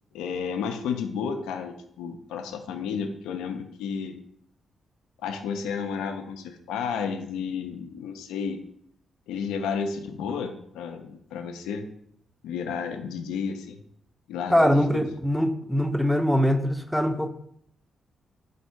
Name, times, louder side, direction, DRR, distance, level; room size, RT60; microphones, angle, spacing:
voice 1, 0.1-4.2 5.2-8.6 9.3-11.9 12.4-13.8 14.3-15.0, left 6 dB, 80° left, 6 dB, 0.3 m, -32 dB
voice 2, 14.5-17.3, equal, ahead, 7 dB, 0.4 m, -22 dB
3.5 x 2.6 x 4.2 m, 0.69 s
hypercardioid pair, 45°, 0 cm